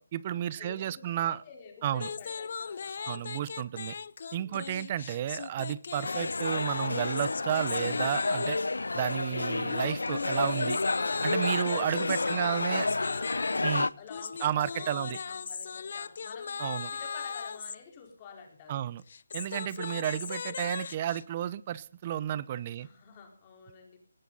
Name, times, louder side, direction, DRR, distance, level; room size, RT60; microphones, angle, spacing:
voice 1, 0.0-1.4 1.8-2.1 3.1-3.9 4.3-8.6 8.9-10.8 11.2-12.9 13.6-13.9 14.4-15.2 16.6-16.9 18.7-19.0 19.3-22.9, right 11 dB, 30° right, 20 dB, 0.7 m, -32 dB
voice 2, 0.6-3.5 4.4-4.7 12.1-18.8 19.6-19.8 22.8-24.0, left 6 dB, 25° left, 3 dB, 4.3 m, -49 dB
sound 1, 2.0-8.7 9.7-17.8 19.0-21.2, left 6 dB, 50° left, 0.6 m, -38 dB
sound 2, 6.0-13.9, left 3 dB, 85° left, 0.7 m, -30 dB
19.0 x 16.5 x 4.0 m, 0.43 s
figure-of-eight pair, 160°, 0 cm